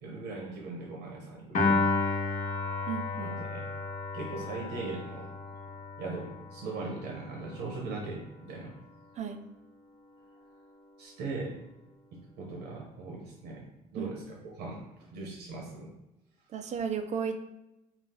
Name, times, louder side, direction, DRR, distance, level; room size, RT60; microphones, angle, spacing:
voice 1, 0.0-1.8 3.2-3.7 4.1-5.3 6.0-8.8 11.0-11.6 12.1-15.9, right 3 dB, 90° right, -1 dB, 1.1 m, -40 dB
Piano, 1.5-7.9, left 3 dB, 50° left, 1.1 m, -32 dB
voice 2, 2.9-3.4 9.2-9.4 14.0-14.1 16.5-17.5, right 7 dB, 45° right, 7 dB, 0.5 m, -34 dB
4.9 x 2.4 x 3.8 m, 0.94 s
cardioid pair, 110°, 17 cm